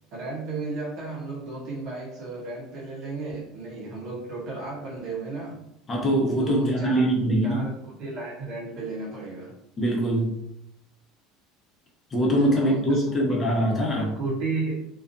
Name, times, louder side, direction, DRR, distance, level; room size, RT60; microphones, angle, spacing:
voice 1, 0.1-5.6 6.4-7.1 7.4-9.5 12.4-13.4 13.9-14.9, right 3 dB, 60° right, -5 dB, 0.7 m, -34 dB
voice 2, 5.9-7.7 9.8-10.4 12.1-14.1, right 1 dB, 30° left, -1 dB, 0.8 m, -23 dB
2.4 x 2.3 x 2.5 m, 0.80 s
supercardioid pair, 105°, 0 cm